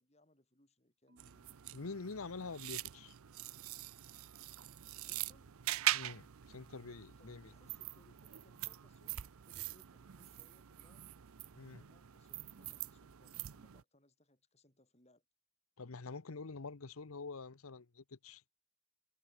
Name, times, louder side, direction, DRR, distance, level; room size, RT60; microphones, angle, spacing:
voice 1, 0.0-1.6 4.9-5.6 7.2-11.1 11.7-15.2, left 1 dB, 30° left, 5.4 m, -70 dB
Marimba xylophone / Wood, 1.1-3.3, right 1 dB, 55° right, 4.9 m, -73 dB
sound 1, 1.2-13.8, right 13 dB, 85° right, 0.6 m, -43 dB
voice 2, 1.7-3.1 5.9-7.5 11.5-11.8 15.8-18.6, left 4 dB, 90° left, 0.9 m, -46 dB
head